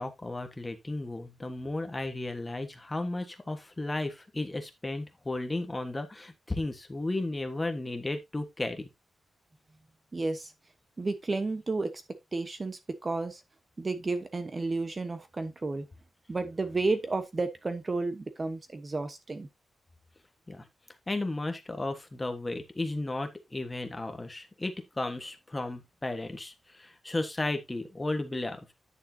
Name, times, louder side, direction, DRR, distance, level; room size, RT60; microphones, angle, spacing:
voice 1, 0.0-8.9 20.5-20.7 21.1-28.7, left 2 dB, 15° left, 1.4 m, -34 dB
voice 2, 10.1-10.5 11.0-12.0 12.3-13.4 13.8-15.9 16.3-19.5, right 3 dB, 25° right, 1.1 m, -32 dB
10.5 x 6.8 x 2.8 m
wide cardioid pair, 135°, 0 cm